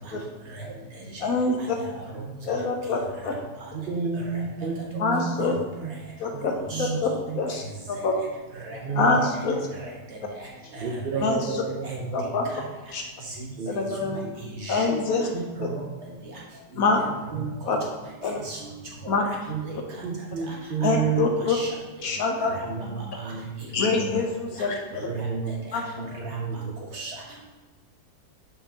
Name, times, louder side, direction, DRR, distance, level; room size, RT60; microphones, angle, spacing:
voice 1, 1.2-1.8 2.5-3.3 5.0-5.5 6.2-6.5 7.0-7.6 7.9-8.1 9.0-9.6 11.2-11.5 12.1-12.5 12.9-13.0 13.7-14.2 14.7-15.3 15.6-15.7 16.8-17.0 17.7-17.8 18.2-18.4 19.1-19.2 20.8-21.6 22.0-22.5 23.7-24.3 24.6-25.0 25.7-25.8, left 4 dB, 65° left, 2 dB, 1.0 m, -25 dB
voice 2, 3.7-7.0 7.3-7.4 8.7-9.6 10.8-12.3 13.6-14.3 15.3-16.2 17.3-17.5 17.7-17.9 19.5-19.6 20.0-21.4 22.5-24.1 24.9-25.5 25.8-26.6, right 6 dB, 65° right, -1 dB, 0.5 m, -32 dB
voice 3, 6.5-6.9 7.5-7.6 8.0-8.1 8.6-8.8 9.8-9.9 10.4-10.5 10.7-10.9 11.8-11.9 12.5-12.6 13.4-13.5 14.4-15.0 15.6-15.8 18.2-18.7 19.0-19.4 19.6-19.8 20.5-20.6 20.8-21.7 22.5-22.9 23.2-23.3 23.9-24.1 26.2-26.4 26.9-27.1, right 2 dB, 45° right, -3 dB, 1.3 m, -38 dB
6.8 x 5.5 x 2.8 m, 1.3 s
omnidirectional pair, 1.8 m